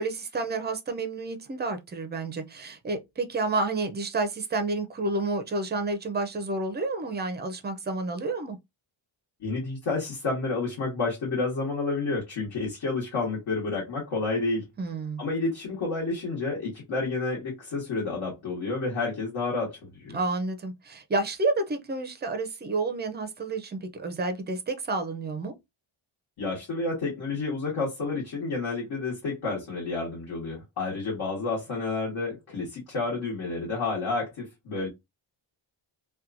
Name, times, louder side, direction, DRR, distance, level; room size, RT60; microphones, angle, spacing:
voice 1, 0.0-8.6 14.8-15.2 20.1-25.5, right 3 dB, 25° right, 0.4 m, -30 dB
voice 2, 9.4-14.7 15.2-20.2 26.4-34.9, left 3 dB, 65° left, 1.3 m, -30 dB
2.8 x 2.2 x 2.4 m
wide cardioid pair, 130°, 49 cm